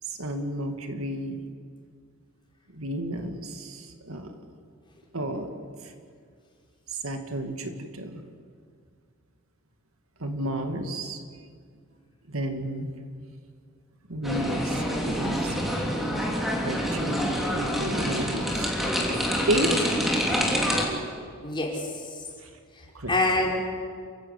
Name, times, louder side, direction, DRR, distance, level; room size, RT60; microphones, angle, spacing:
voice 1, 0.2-1.4 2.7-4.3 5.1-5.5 7.0-8.2 10.2-11.2 12.3-12.9 14.1-15.7 16.6-18.7 19.5-19.9 22.9-23.1, right 1 dB, 80° right, 5 dB, 2.2 m, -31 dB
sound 1, 14.2-20.8, equal, ahead, 3.4 m, -27 dB
voice 2, 21.4-22.2 22.7-23.6, left 2 dB, 25° left, -1 dB, 4.6 m, -27 dB
29.5 x 15.0 x 8.2 m, 2.1 s
head